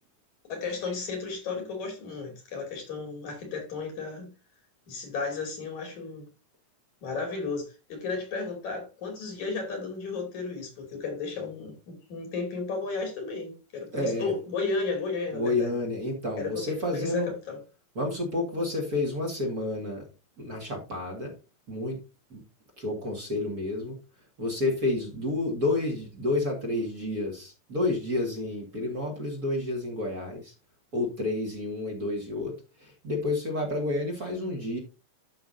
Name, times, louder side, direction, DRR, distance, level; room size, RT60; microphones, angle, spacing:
voice 1, 0.5-4.3 4.9-6.3 7.0-15.7 16.4-17.6, left 4 dB, 75° left, 4.1 m, -34 dB
voice 2, 13.9-14.4 15.3-17.3 17.9-20.1 20.4-21.3 21.7-22.0 22.3-22.4 22.8-24.0 24.4-30.5 30.9-34.8, left 2 dB, 35° right, 2.1 m, -30 dB
13.0 x 5.9 x 2.7 m
omnidirectional pair, 3.4 m